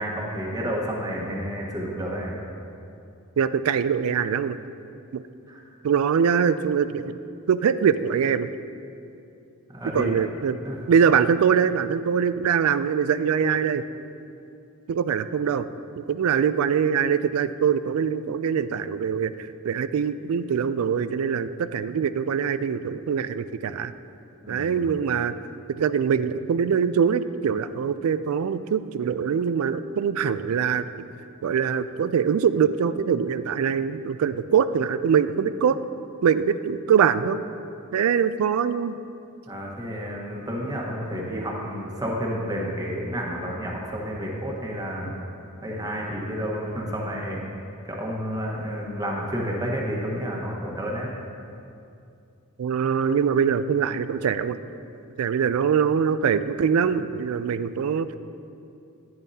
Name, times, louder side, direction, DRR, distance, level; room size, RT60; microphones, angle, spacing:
voice 1, 0.0-2.4 5.5-5.6 9.7-10.2 10.6-10.8 24.4-24.8 39.5-45.1 45.6-47.4 47.8-51.1, equal, 20° right, -2 dB, 1.3 m, -30 dB
voice 2, 3.4-4.6 5.1-5.2 5.8-7.2 7.5-8.5 9.9-10.6 10.9-13.8 14.9-15.7 15.9-23.9 24.5-25.3 25.7-30.9 31.4-35.8 36.2-37.4 37.9-39.0 52.6-54.6 55.2-58.2, right 7 dB, 85° right, 13 dB, 0.4 m, -23 dB
10.5 x 10.5 x 2.8 m, 2.6 s
head